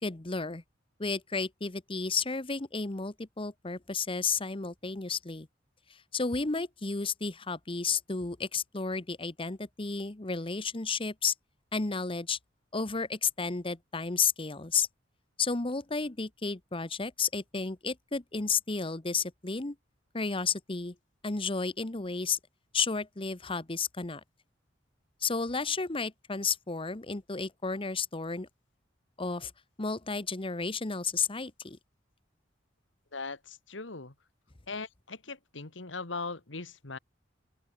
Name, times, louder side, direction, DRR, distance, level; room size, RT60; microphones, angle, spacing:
voice 1, 0.0-0.6 1.0-5.5 5.9-11.3 11.7-12.4 12.7-14.9 15.4-19.7 20.1-20.9 21.2-22.4 22.7-24.2 25.2-28.5 29.2-29.5 29.8-31.8, left 5 dB, 30° left, 1.1 m, -32 dB
voice 2, 33.1-34.1 34.7-37.0, left 3 dB, 75° left, 2.1 m, -39 dB
open air
head